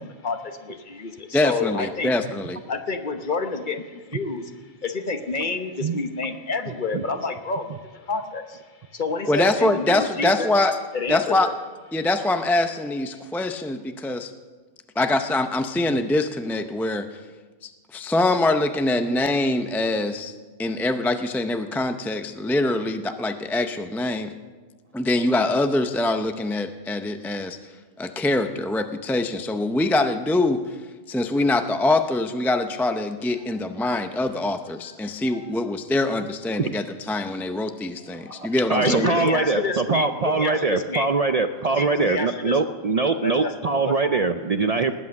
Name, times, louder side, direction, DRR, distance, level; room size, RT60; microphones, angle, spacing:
voice 1, 0.0-2.1 2.7-4.5 4.8-7.8 8.1-8.6 8.9-10.5 10.9-11.5 13.1-13.3 35.2-35.5 38.3-38.4 38.8-41.1 41.7-42.6 43.2-43.5 43.9-44.2, left 3 dB, 50° left, 7 dB, 1.1 m, -29 dB
voice 2, 1.3-2.6 9.3-10.8 11.1-11.5 11.9-14.3 15.0-17.1 17.6-20.3 20.6-24.3 24.9-27.6 28.0-30.6 31.1-39.1, left 2 dB, 5° left, 7 dB, 0.4 m, -24 dB
voice 3, 38.3-44.9, right 4 dB, 45° right, 8 dB, 0.5 m, -23 dB
19.5 x 8.5 x 6.4 m, 1.3 s
omnidirectional pair, 1.1 m